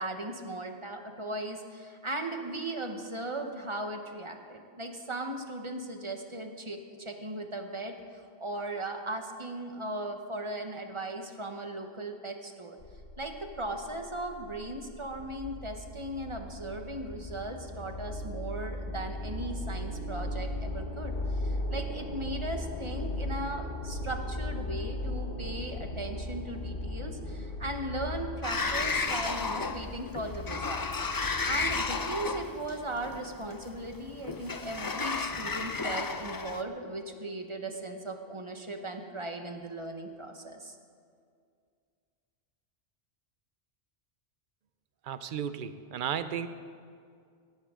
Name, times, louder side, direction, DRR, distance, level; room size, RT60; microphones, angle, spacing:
voice 1, 0.0-7.9 8.4-12.8 13.2-31.0 31.4-40.7, right 1 dB, 30° right, 4 dB, 1.0 m, -37 dB
sound 1, 12.8-32.2, left 1 dB, 55° left, 1.3 m, -38 dB
Sliding door, 28.4-36.6, left 4 dB, 35° left, 0.3 m, -33 dB
voice 2, 45.0-46.5, right 8 dB, 55° right, 12 dB, 0.8 m, -34 dB
17.5 x 14.0 x 3.7 m, 2.3 s
omnidirectional pair, 1.1 m